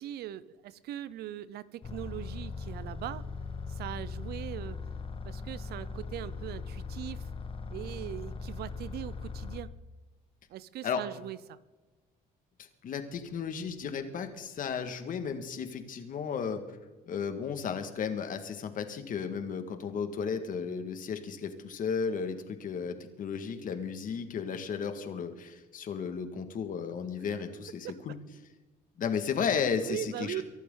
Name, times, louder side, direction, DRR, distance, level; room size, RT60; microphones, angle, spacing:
voice 1, 0.0-3.2 3.7-4.8 5.2-7.3 7.7-9.7 10.5-11.6 27.3-27.4 27.8-28.0 29.8-30.4, right 12 dB, 70° right, 18 dB, 0.8 m, -40 dB
sound 1, 1.8-9.6, left 4 dB, 35° left, 1.3 m, -39 dB
voice 2, 12.6-16.6 17.1-28.2 29.0-30.4, left 6 dB, 55° left, 7 dB, 2.0 m, -34 dB
24.0 x 11.5 x 4.0 m, 1.2 s
cardioid pair, 110°, 17 cm